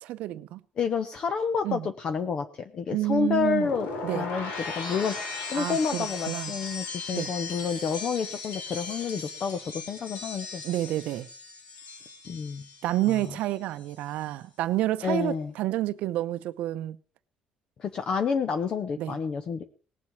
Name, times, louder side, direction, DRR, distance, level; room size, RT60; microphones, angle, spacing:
voice 1, 0.0-0.6 1.6-1.9 2.9-3.7 4.0-4.3 5.5-6.5 7.1-7.3 10.6-11.3 12.8-17.0 19.0-19.2, right 15 dB, 80° right, 0.7 m, -29 dB
voice 2, 0.8-3.9 4.1-10.6 12.3-12.6 13.1-13.2 15.0-15.5 17.8-19.6, left 6 dB, 40° left, 0.9 m, -29 dB
sound 1, 3.4-13.5 13.8-14.2, left 4 dB, 90° left, 6.8 m, -38 dB
19.0 x 7.6 x 7.2 m
cardioid pair, 175°, 2 cm